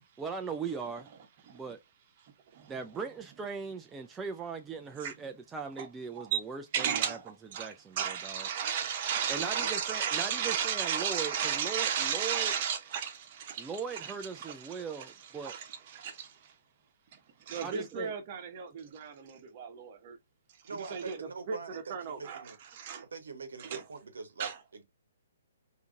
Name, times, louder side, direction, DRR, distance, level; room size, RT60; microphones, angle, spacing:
voice 1, 0.2-1.1 1.5-1.8 2.7-7.2 7.6-8.5 9.3-12.5 13.6-15.5 17.6-18.1, right 5 dB, 15° right, 0.4 m, -39 dB
voice 2, 2.2-2.8 5.0-5.1 5.8-5.9 6.3-6.4 6.7-16.5 17.1-20.2 20.7-21.2 21.5-23.1 23.6-23.8 24.4-24.6, right 8 dB, 40° right, 1.0 m, -35 dB
voice 3, 9.4-9.7 20.6-22.6 23.1-24.8, right 4 dB, 70° right, 0.9 m, -43 dB
3.5 x 2.7 x 2.4 m
figure-of-eight pair, 130°, 0 cm